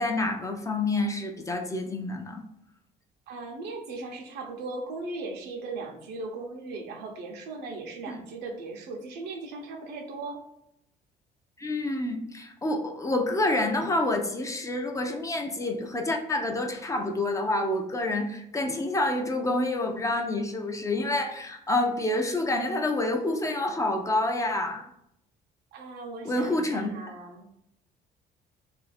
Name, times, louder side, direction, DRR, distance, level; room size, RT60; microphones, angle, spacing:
voice 1, 0.0-2.5 8.0-8.2 11.6-24.9 26.2-26.9, left 2 dB, 20° left, 4 dB, 0.4 m, -28 dB
voice 2, 3.3-10.4 25.7-27.5, right 3 dB, 80° right, 2 dB, 0.8 m, -38 dB
2.6 x 2.4 x 4.0 m, 0.77 s
cardioid pair, 110°, 17 cm